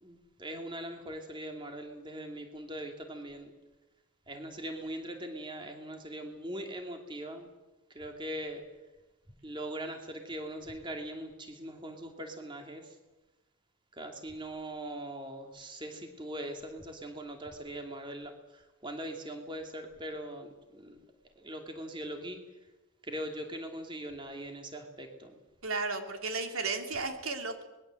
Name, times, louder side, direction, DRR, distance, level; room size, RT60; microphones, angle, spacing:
voice 1, 0.0-3.5 4.3-7.5 7.9-8.6 9.4-12.9 14.0-21.0 21.4-22.4 23.0-25.3, right 1 dB, 20° right, 4 dB, 2.7 m, -41 dB
voice 2, 25.6-27.6, right 3 dB, 85° right, 5 dB, 2.9 m, -34 dB
24.5 x 21.0 x 7.8 m, 1.1 s
head